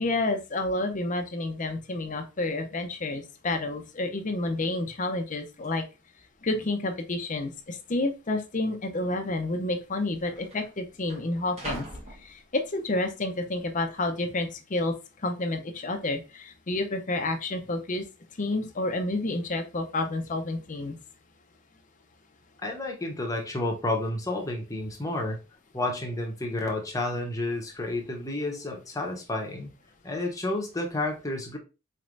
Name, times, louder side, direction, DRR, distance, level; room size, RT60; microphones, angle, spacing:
voice 1, 0.0-5.8 6.4-11.9 12.2-15.0 15.2-18.0 18.4-21.0, left 2 dB, 35° left, 5 dB, 0.6 m, -29 dB
sound 1, 4.2-4.3 4.5-4.9 5.6-5.7 6.5-7.0 7.3-7.4 8.2-8.4 9.4-9.5 9.7-13.0 13.4-13.9, right 2 dB, 30° right, 1.2 m, -44 dB
voice 2, 22.6-25.4 25.7-29.7 30.0-31.6, left 2 dB, 15° left, 1 dB, 0.9 m, -30 dB
4.2 x 3.2 x 2.5 m, 0.29 s
head